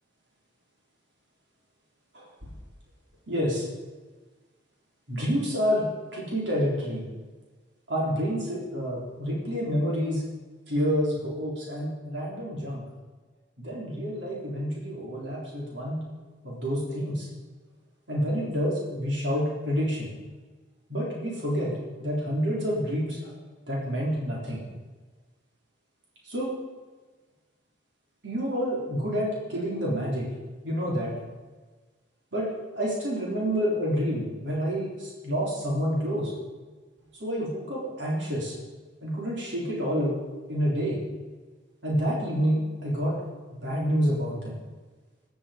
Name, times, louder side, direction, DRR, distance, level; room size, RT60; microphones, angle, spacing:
voice 1, 2.1-2.5 3.3-3.7 5.1-7.0 7.9-10.2 10.7-12.8 13.6-16.0 16.4-17.3 18.1-20.1 20.9-21.7 22.0-23.3 23.7-24.6 26.2-26.5 28.2-30.3 30.6-31.1 32.3-32.5 32.7-36.3 37.2-38.5 39.0-40.2 40.5-41.0 41.8-43.1 43.6-44.5, equal, 85° right, -4 dB, 3.9 m, -28 dB
17.5 x 11.5 x 5.2 m, 1.3 s
head